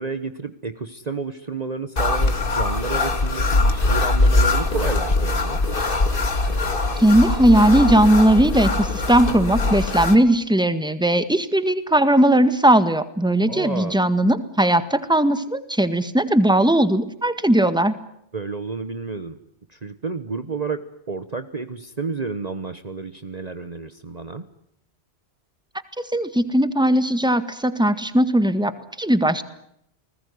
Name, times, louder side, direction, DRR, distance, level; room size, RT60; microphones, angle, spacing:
voice 1, 0.0-5.6 13.5-14.0 18.3-19.4 19.7-24.5, right 4 dB, 40° right, 10 dB, 1.3 m, -31 dB
sound 1, 2.0-10.2, left 2 dB, 55° left, 2.3 m, -21 dB
voice 2, 7.0-17.9 26.0-28.7 29.0-29.4, right 1 dB, 5° right, 11 dB, 1.8 m, -18 dB
30.0 x 20.0 x 9.6 m, 0.75 s
omnidirectional pair, 1.1 m